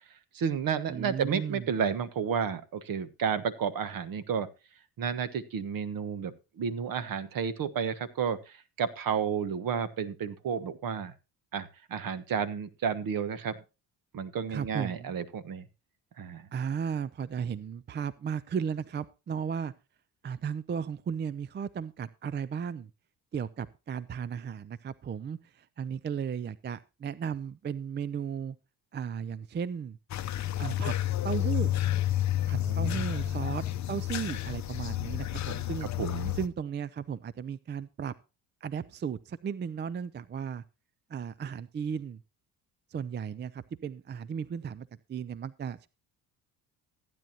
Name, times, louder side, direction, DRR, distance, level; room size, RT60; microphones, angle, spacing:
voice 1, 0.3-4.5 5.0-11.1 11.5-13.6 14.1-15.6 16.2-16.5 32.5-33.3 36.0-36.4, right 7 dB, 55° right, 13 dB, 1.3 m, -32 dB
voice 2, 0.9-1.7 14.5-15.2 16.5-19.7 20.2-22.9 23.3-28.6 28.9-30.0 30.6-30.9 31.2-31.7 32.5-35.9 36.3-38.1 38.6-40.6 41.1-42.2 42.9-45.9, right 7 dB, 25° right, 18 dB, 0.5 m, -35 dB
sound 1, 30.1-36.5, left 13 dB, 45° left, 0.7 m, -30 dB
15.0 x 9.2 x 2.9 m, 0.29 s
supercardioid pair, 80°, 41 cm